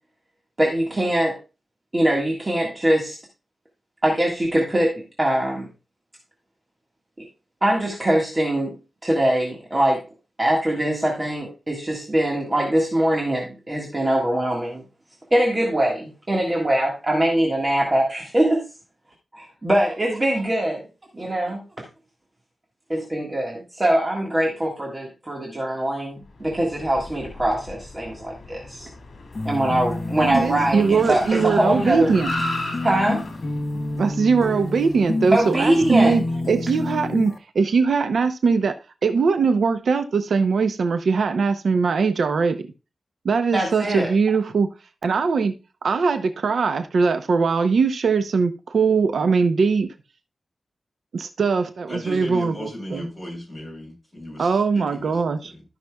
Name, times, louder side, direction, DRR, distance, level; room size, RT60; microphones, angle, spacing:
voice 1, 0.6-1.4 1.9-3.2 4.0-5.7 7.2-7.3 7.6-8.7 9.0-10.0 10.4-14.8 15.3-18.7 19.4-20.8 21.2-21.6 22.9-28.9 29.4-32.1 32.8-33.2 35.3-36.2 43.5-44.1, right 1 dB, 25° right, 1.6 m, -22 dB
Car, 26.4-35.9, left 1 dB, 75° left, 1.8 m, -37 dB
sound 1, 29.4-37.4, left 2 dB, 35° left, 0.7 m, -29 dB
voice 2, 30.2-32.3 34.0-38.7 39.0-42.7 43.2-44.7 45.0-45.5 45.8-49.9 51.1-53.0 54.4-55.5, right 5 dB, 90° right, 0.7 m, -21 dB
voice 3, 51.9-55.2 55.4-55.6, equal, 5° left, 5.5 m, -35 dB
14.5 x 5.8 x 2.3 m
wide cardioid pair, 140°, 0 cm